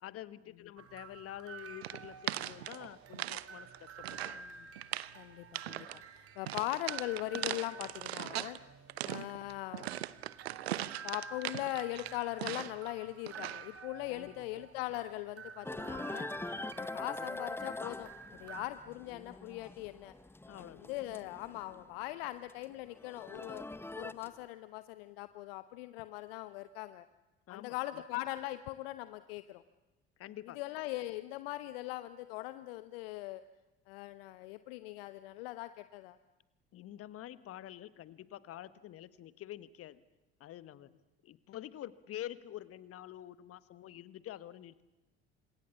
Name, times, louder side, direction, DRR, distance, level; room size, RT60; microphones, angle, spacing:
voice 1, 0.0-4.4 14.1-14.4 20.5-20.9 27.5-28.0 30.2-30.6 36.7-40.0 40.4-40.9 41.2-44.8, left 13 dB, 45° left, 15 dB, 1.5 m, -47 dB
sound 1, 0.8-18.7, right 5 dB, 45° right, 2.8 m, -51 dB
sound 2, 1.8-3.5 3.7-4.4 4.8-5.1 5.5-6.0 6.5-8.6 8.9-12.9 13.3-13.7, right 14 dB, 75° right, 0.9 m, -39 dB
voice 2, 5.2-8.6 9.0-9.9 11.0-16.3 16.6-20.1 20.5-23.7 23.9-27.1 27.5-29.6 30.6-33.4 33.9-36.2, left 17 dB, 65° left, 13 dB, 0.9 m, -40 dB
sound 3, 15.6-21.9 22.2-24.5, left 2 dB, 5° left, 0.9 m, -44 dB
29.0 x 26.5 x 7.3 m, 1.1 s
figure-of-eight pair, 60°, 32 cm